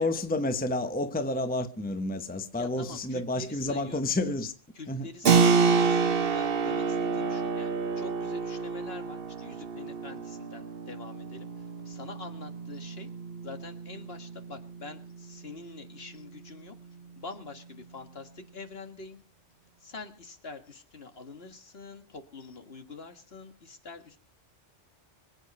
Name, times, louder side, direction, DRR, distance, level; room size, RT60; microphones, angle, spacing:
voice 1, 0.0-4.5 4.9-5.5, left 2 dB, 10° left, 0.9 m, -30 dB
voice 2, 2.5-4.0 4.7-13.1 13.4-16.8 17.2-19.2 19.8-24.2, left 3 dB, 55° left, 2.0 m, -45 dB
Keyboard (musical), 5.3-15.6, right 5 dB, 55° right, 1.1 m, -28 dB
24.5 x 8.5 x 5.4 m
omnidirectional pair, 1.2 m